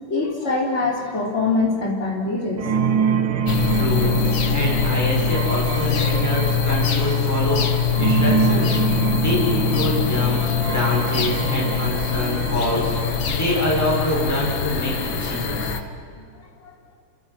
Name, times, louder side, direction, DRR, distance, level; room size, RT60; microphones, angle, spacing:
voice 1, 0.1-2.7 4.1-4.2 15.6-15.8 16.1-16.2 16.6-16.7, left 3 dB, 30° left, -3 dB, 4.7 m, -24 dB
sound 1, 2.6-15.8, right 7 dB, 70° right, 2.5 m, -26 dB
sound 2, 3.5-15.8, left 8 dB, 65° left, 2.1 m, -23 dB
voice 2, 3.7-4.1 4.5-8.8 9.1-12.9 13.3-15.7, left 1 dB, 5° left, -4 dB, 6.6 m, -25 dB
29.5 x 26.5 x 6.2 m, 2.4 s
omnidirectional pair, 2.3 m